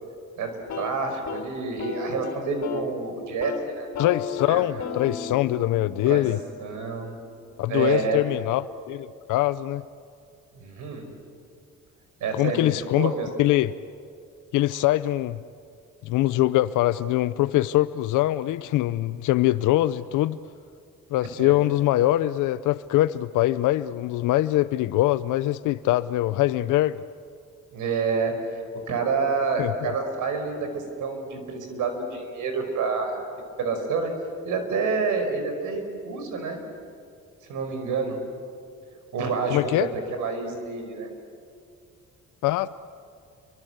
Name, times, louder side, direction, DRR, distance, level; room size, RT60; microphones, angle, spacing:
voice 1, 0.4-3.9 4.5-4.6 6.1-6.3 6.6-7.1 7.7-8.2 10.5-11.1 12.2-13.3 21.2-21.6 27.7-33.3 33.6-34.1 34.5-36.6 37.5-38.2 39.1-41.1, right 4 dB, 80° right, 5.2 m, -28 dB
sound 1, 0.6-2.9 3.2-3.6 3.9-7.8, left 6 dB, 65° left, 3.9 m, -35 dB
voice 2, 4.0-6.4 7.6-9.8 12.3-13.1 13.4-13.7 14.5-15.4 16.0-20.4 21.1-27.0 29.6-29.9 39.5-39.9 42.4-42.7, left 15 dB, 90° left, 0.6 m, -23 dB
29.5 x 24.0 x 8.0 m
cardioid pair, 90°, 30 cm